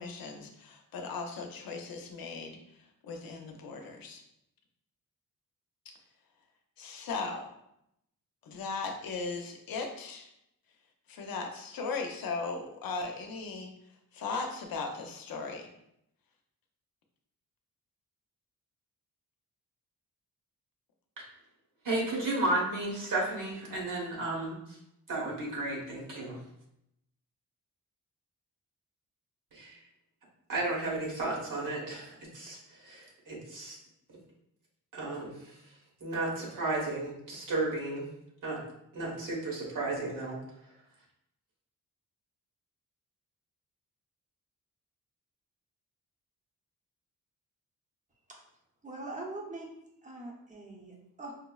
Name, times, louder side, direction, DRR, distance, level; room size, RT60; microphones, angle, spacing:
voice 1, 0.0-2.6 3.0-4.2 6.8-7.5 8.4-10.3 11.1-13.7 14.1-15.7, left 4 dB, 80° left, 3 dB, 0.6 m, -37 dB
voice 2, 21.8-24.8 25.1-26.4 29.5-29.8 30.5-33.8 34.1-34.2 34.9-35.6 36.0-38.1 38.4-38.6 38.9-40.4, right 2 dB, 65° right, -3 dB, 1.2 m, -33 dB
voice 3, 48.8-49.7 50.0-51.3, right 2 dB, 20° right, -1 dB, 0.7 m, -42 dB
5.1 x 2.0 x 2.3 m, 0.79 s
wide cardioid pair, 110°, 35 cm